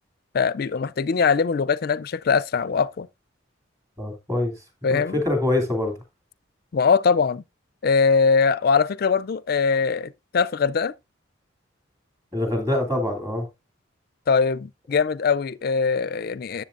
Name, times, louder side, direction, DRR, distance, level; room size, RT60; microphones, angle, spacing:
voice 1, 0.3-3.1 4.8-5.1 6.7-7.4 7.8-10.9 14.3-16.6, left 5 dB, 50° left, 0.4 m, -21 dB
voice 2, 4.0-4.6 4.9-6.0 12.3-13.5, left 2 dB, 15° right, 2.6 m, -24 dB
12.5 x 7.4 x 2.5 m
head